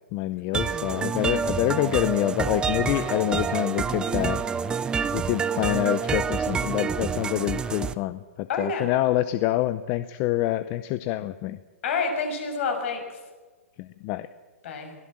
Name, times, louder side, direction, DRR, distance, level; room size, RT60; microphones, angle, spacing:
voice 1, 0.1-4.4 5.1-11.6 13.8-14.3, left 15 dB, 30° left, 14 dB, 0.6 m, -26 dB
sound 1, 0.5-7.9, right 6 dB, 10° right, 0.5 m, -27 dB
voice 2, 8.5-8.9 11.8-13.2 14.6-14.9, left 4 dB, 55° left, 4 dB, 6.5 m, -28 dB
23.0 x 16.0 x 7.6 m, 1.4 s
hypercardioid pair, 145°, 8 cm